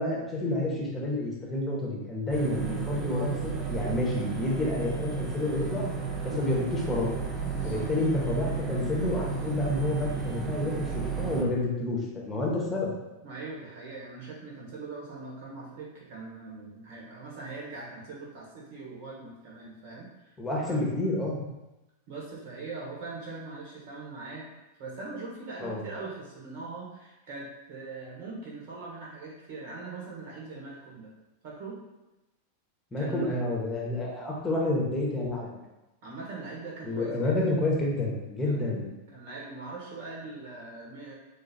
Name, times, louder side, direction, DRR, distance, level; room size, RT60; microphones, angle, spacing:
voice 1, 0.0-5.8 6.2-7.1 7.6-12.0 12.2-12.9 20.4-21.4 25.6-25.8 32.9-35.5 36.8-38.9, left 2 dB, 10° left, -3 dB, 1.2 m, -29 dB
sound 1, 2.3-11.4, right 5 dB, 20° right, 0.7 m, -33 dB
voice 2, 7.5-7.9 11.3-11.5 13.2-20.4 20.6-20.8 22.1-24.5 24.8-31.1 31.4-31.8 33.0-33.4 36.0-37.5 38.4-38.7 39.1-41.1, right 3 dB, 50° right, -4 dB, 1.2 m, -41 dB
3.7 x 2.7 x 4.1 m, 0.99 s
figure-of-eight pair, 90°, 0 cm